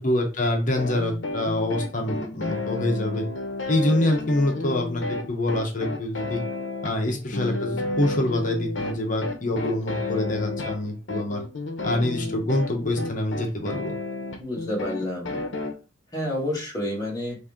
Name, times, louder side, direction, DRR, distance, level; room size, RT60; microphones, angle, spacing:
voice 1, 0.0-3.3 3.7-6.4 6.8-11.4 11.8-14.0, left 1 dB, 45° left, 2 dB, 1.0 m, -25 dB
sound 1, 0.8-15.7, left 2 dB, 80° left, 0.8 m, -32 dB
voice 2, 14.4-15.4 16.1-17.4, left 1 dB, 20° left, -3 dB, 1.7 m, -29 dB
4.2 x 2.7 x 3.6 m, 0.32 s
head